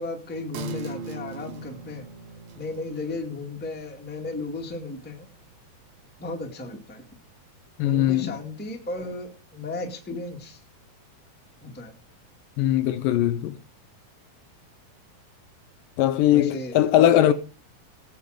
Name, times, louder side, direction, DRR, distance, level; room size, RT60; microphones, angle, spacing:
voice 1, 0.0-2.1 2.5-5.2 6.2-7.0 7.8-10.6 11.6-11.9 16.3-17.3, left 2 dB, 5° left, 1.2 m, -35 dB
sound 1, 0.5-7.6 7.9-8.0, right 5 dB, 60° right, 2.4 m, -42 dB
voice 2, 7.8-8.4 12.6-13.6 16.0-17.3, left 12 dB, 75° left, 2.2 m, -20 dB
18.0 x 7.7 x 5.1 m
omnidirectional pair, 4.3 m